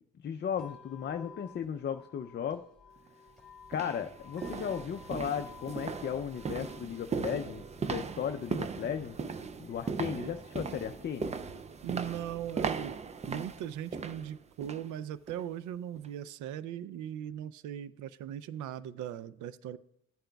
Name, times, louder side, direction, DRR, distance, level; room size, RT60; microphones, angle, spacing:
voice 1, 0.2-2.6 3.7-9.2 9.6-11.3, left 8 dB, 35° left, 0.4 m, -35 dB
sound 1, 0.5-14.5, left 6 dB, ahead, 2.4 m, -56 dB
sound 2, 3.0-3.1 3.6-14.9 15.3-15.5 16.0-16.1, right 5 dB, 25° right, 0.4 m, -38 dB
voice 2, 11.8-19.8, right 10 dB, 80° right, 0.5 m, -39 dB
13.5 x 8.9 x 2.3 m
cardioid pair, 90°, 30 cm